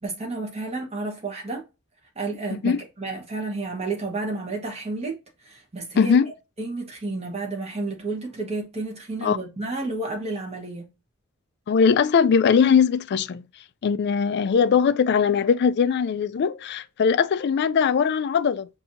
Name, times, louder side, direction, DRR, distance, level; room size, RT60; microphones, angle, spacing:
voice 1, 0.0-1.6 2.1-6.2 6.6-10.9, right 3 dB, 30° right, 1.3 m, -31 dB
voice 2, 6.0-6.3 9.2-9.4 11.7-13.4 13.8-18.7, left 6 dB, 50° left, 0.3 m, -20 dB
5.6 x 2.7 x 2.7 m
head